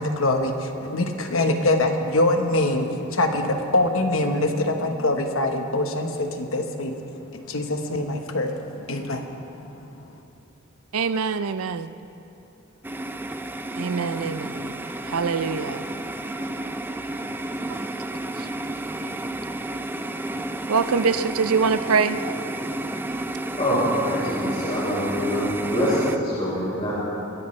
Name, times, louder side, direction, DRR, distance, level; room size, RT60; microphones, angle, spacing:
voice 1, 0.0-7.0 7.3-9.3, left 2 dB, 70° left, 5 dB, 1.2 m, -24 dB
voice 2, 10.9-11.9 13.8-14.8 15.1-15.8 17.7-17.9 18.4-18.5 20.7-22.2, right 5 dB, 85° right, 12 dB, 0.5 m, -24 dB
sound 1, 12.8-26.2, right 1 dB, 10° right, 0.4 m, -31 dB
voice 3, 23.6-26.9, equal, 30° left, -9 dB, 4.1 m, -25 dB
22.5 x 15.5 x 3.3 m, 2.9 s
head